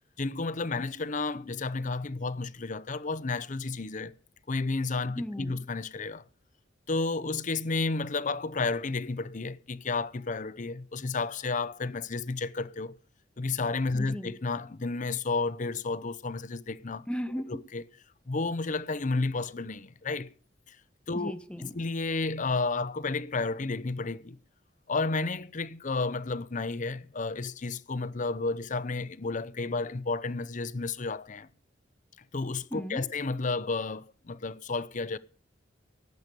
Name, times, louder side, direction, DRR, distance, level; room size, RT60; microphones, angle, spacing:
voice 1, 0.2-4.1 4.5-6.2 6.9-13.0 13.4-17.0 17.5-17.8 18.3-20.3 20.7-20.8 21.1-21.3 21.7-24.4 24.9-31.5 32.3-35.2, left 3 dB, 45° left, 0.7 m, -32 dB
voice 2, 5.1-5.7 13.9-14.4 17.1-17.6 21.1-21.8 32.7-33.1, equal, 5° left, 0.7 m, -36 dB
17.0 x 8.2 x 6.8 m
head